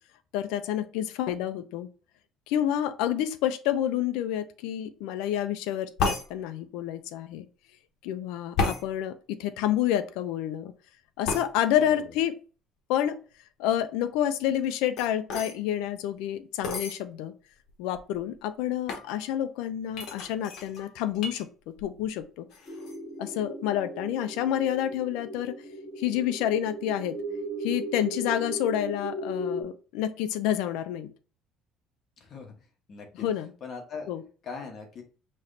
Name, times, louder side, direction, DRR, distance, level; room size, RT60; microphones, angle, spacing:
voice 1, 0.3-1.9 2.5-7.5 8.0-10.7 11.2-12.4 12.9-13.2 13.6-17.3 17.8-22.4 23.2-25.6 26.0-27.2 27.6-31.1 33.1-33.5 34.1-34.2, left 11 dB, 85° left, 11 dB, 0.5 m, -29 dB
sound 1, 6.0-6.3 8.6-8.8 11.2-11.5 14.5-15.6 16.6-17.0 17.7-17.8 17.9-18.3 18.9-19.1 19.9-21.4 21.8-22.2 22.5-23.0, left 3 dB, 60° left, 1.0 m, -31 dB
sound 2, 22.7-29.6, right 1 dB, 15° left, 2.0 m, -37 dB
voice 2, 32.2-32.5 32.9-33.3 33.6-34.1 34.4-35.0, left 5 dB, 35° left, 2 dB, 1.1 m, -40 dB
5.7 x 3.1 x 2.6 m, 0.37 s
cardioid pair, 170°, 0 cm